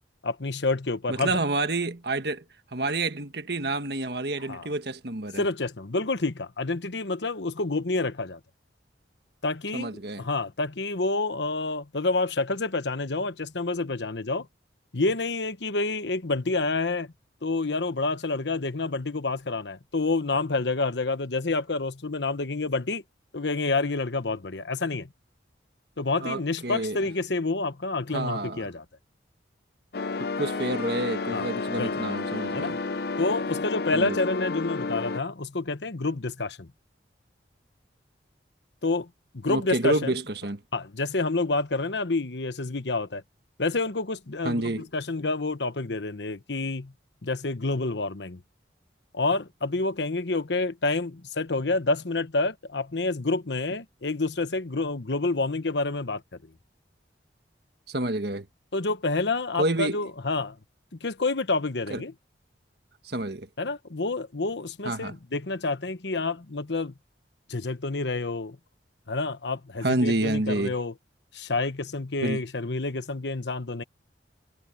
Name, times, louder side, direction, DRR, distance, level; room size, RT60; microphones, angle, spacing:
voice 1, 0.2-1.4 4.5-4.7 5.4-8.4 9.4-9.9 10.2-14.5 14.9-17.1 17.4-23.0 23.3-25.1 26.0-28.8 31.3-31.5 31.7-32.1 32.5-32.7 33.2-36.7 38.8-39.1 39.3-40.2 40.7-43.2 43.6-46.9 47.2-48.4 49.1-56.2 58.7-60.6 61.0-62.1 63.6-66.9 67.5-68.6 69.1-70.9 71.3-73.8, left 3 dB, 75° left, 1.1 m, -28 dB
voice 2, 1.1-2.4 2.7-5.4 9.7-10.2 26.2-27.0 28.1-28.7 30.4-32.8 33.9-34.2 39.5-40.6 44.4-44.9 57.9-58.5 59.6-60.0 61.9-62.0 63.0-63.5 64.8-65.1 69.8-70.7 72.2-72.4, right 2 dB, 60° right, 1.5 m, -28 dB
sound 1, 29.9-35.2, left 3 dB, 55° left, 0.6 m, -31 dB
head